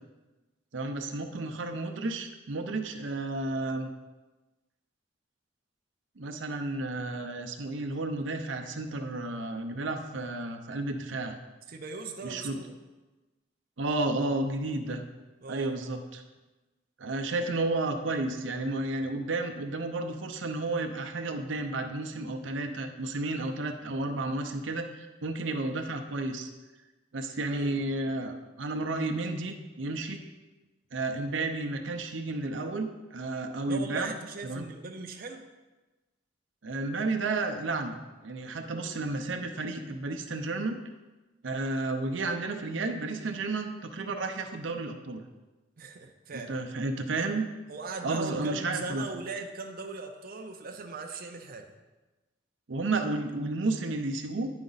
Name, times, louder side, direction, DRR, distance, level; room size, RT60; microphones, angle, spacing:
voice 1, 0.7-3.9 6.2-11.4 12.2-12.6 13.8-15.0 15.5-16.2 17.0-26.5 27.1-30.2 30.9-34.1 34.4-34.7 36.6-38.0 38.2-40.8 41.4-45.2 46.3-47.4 48.0-49.1 52.7-54.5, right 2 dB, 85° right, 4 dB, 0.7 m, -32 dB
voice 2, 11.7-12.7 15.4-15.8 27.5-27.8 33.7-35.5 45.8-46.6 47.7-51.7, right 4 dB, 50° right, 3 dB, 0.6 m, -39 dB
9.6 x 5.1 x 4.0 m, 1.1 s
head